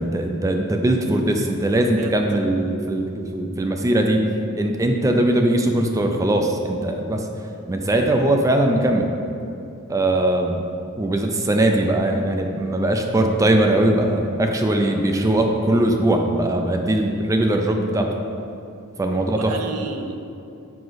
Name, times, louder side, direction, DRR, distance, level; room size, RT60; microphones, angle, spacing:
voice 1, 0.0-4.2 4.5-7.3 7.7-9.1 9.9-10.6 11.0-18.1 19.0-19.5, right 1 dB, 15° right, 3 dB, 0.3 m, -20 dB
voice 2, 1.7-2.2 19.1-20.2, right 4 dB, 75° right, 5 dB, 0.5 m, -32 dB
5.0 x 4.8 x 4.0 m, 2.7 s
head